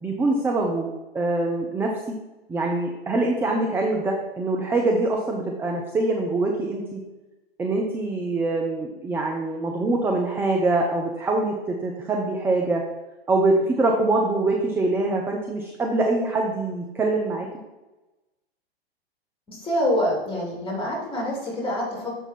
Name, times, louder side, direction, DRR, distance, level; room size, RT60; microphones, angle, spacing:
voice 1, 0.0-2.2 2.5-7.0 7.6-12.8 13.3-17.5, right 2 dB, 5° right, 1 dB, 0.5 m, -24 dB
voice 2, 19.5-22.2, left 1 dB, 15° left, -3 dB, 2.8 m, -26 dB
7.0 x 5.4 x 4.3 m, 1.1 s
figure-of-eight pair, 100°, 31 cm